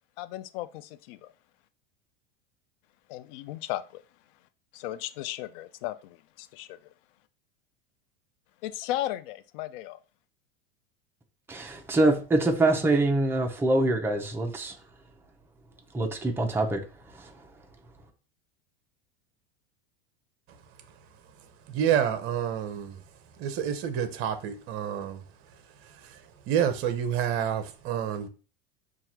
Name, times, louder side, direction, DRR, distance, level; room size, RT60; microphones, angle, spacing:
voice 1, 0.2-1.3 3.1-4.0 4.7-6.8 8.6-10.0, left 14 dB, 60° left, 0.5 m, -35 dB
voice 2, 11.5-14.7 15.9-16.8 17.1-17.3, right 2 dB, 5° right, 0.7 m, -25 dB
voice 3, 21.4-23.0 23.4-25.2 25.5-28.3, right 9 dB, 45° right, 0.8 m, -29 dB
5.8 x 2.5 x 2.9 m
hypercardioid pair, 105°, 30 cm